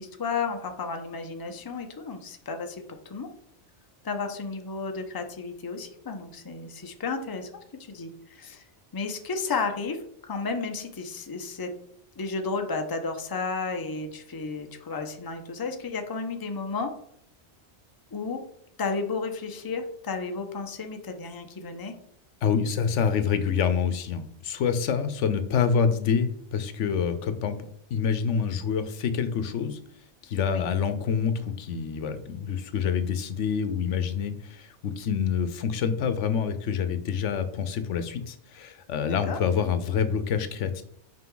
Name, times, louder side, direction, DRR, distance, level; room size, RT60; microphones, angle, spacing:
voice 1, 0.0-3.3 4.0-8.6 8.9-11.7 12.2-16.9 18.1-18.4 18.8-21.9 30.5-30.7 39.0-39.4, left 4 dB, 25° left, 5 dB, 0.6 m, -33 dB
voice 2, 22.4-27.6 27.9-29.8 30.2-40.8, left 7 dB, 90° left, 11 dB, 1.0 m, -27 dB
5.8 x 5.1 x 3.8 m, 0.70 s
omnidirectional pair, 1.2 m